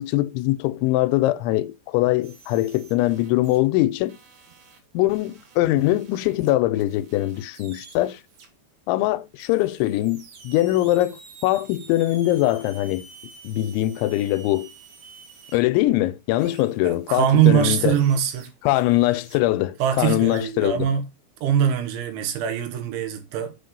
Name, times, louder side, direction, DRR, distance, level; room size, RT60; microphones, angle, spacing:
voice 1, 0.0-4.2 4.9-8.2 8.9-13.1 13.4-14.7 15.5-18.0 18.6-20.9, left 16 dB, 85° left, 3.0 m, -22 dB
sound 1, 2.2-3.7 4.0-8.5 9.4-15.6 16.4-17.5 17.9-19.4 19.8-20.5, right 5 dB, 55° right, 2.9 m, -49 dB
voice 2, 16.8-18.5 19.8-21.1 21.4-23.6, right 10 dB, 85° right, 3.7 m, -22 dB
8.2 x 4.4 x 5.2 m
omnidirectional pair, 5.3 m